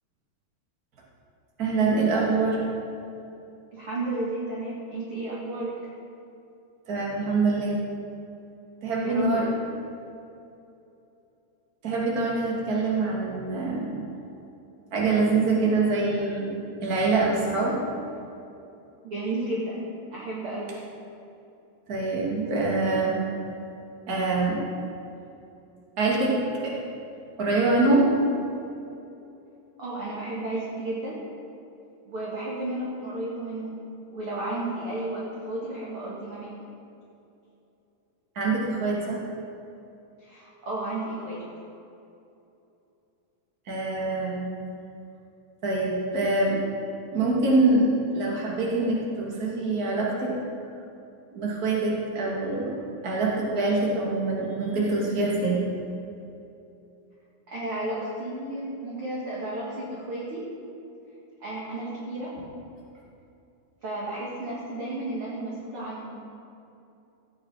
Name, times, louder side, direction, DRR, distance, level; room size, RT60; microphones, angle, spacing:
voice 1, 1.6-2.6 6.9-7.8 8.8-9.5 11.8-14.0 14.9-16.5 16.8-17.8 21.9-23.2 24.1-24.6 26.0-26.3 26.6-26.7 27.4-28.1 38.4-39.2 43.7-44.5 45.6-46.6 47.1-50.3 51.3-52.7 53.0-55.6, right 3 dB, 30° right, -4 dB, 2.0 m, -24 dB
voice 2, 3.7-5.7 9.0-9.5 19.0-20.7 29.8-31.2 32.1-33.8 34.1-36.5 40.2-41.4 57.5-60.4 61.4-62.3 63.8-66.2, right 2 dB, 45° right, -6 dB, 1.9 m, -33 dB
15.5 x 9.0 x 4.8 m, 2.8 s
omnidirectional pair, 4.7 m